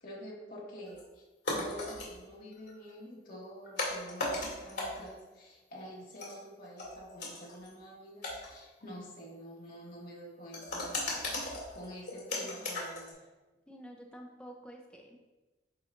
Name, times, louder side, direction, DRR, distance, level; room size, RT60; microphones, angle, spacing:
voice 1, 0.0-1.2 1.6-11.2 11.7-13.3, equal, 50° left, -5 dB, 1.7 m, -47 dB
sound 1, 0.9-1.0 1.4-2.2 2.5-2.9 3.5-5.2 6.1-7.7 8.2-8.8 10.5-13.1, left 2 dB, 75° left, 2.1 m, -37 dB
voice 2, 13.7-15.2, equal, 5° left, 1 dB, 0.5 m, -49 dB
10.5 x 4.0 x 2.5 m, 1.2 s
head